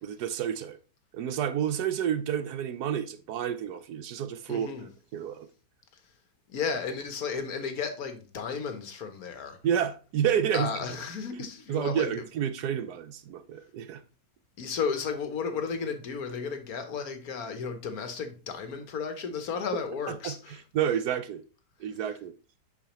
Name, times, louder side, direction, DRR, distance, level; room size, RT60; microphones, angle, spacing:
voice 1, 0.0-0.8 1.1-4.7 5.1-5.5 9.6-10.7 11.7-14.0 20.1-21.4 21.8-22.3, right 9 dB, 75° right, 1.2 m, -30 dB
voice 2, 4.5-4.9 6.5-9.6 10.5-12.1 14.6-20.6, left 6 dB, 65° left, 1.4 m, -33 dB
8.4 x 5.6 x 3.0 m
omnidirectional pair, 1.8 m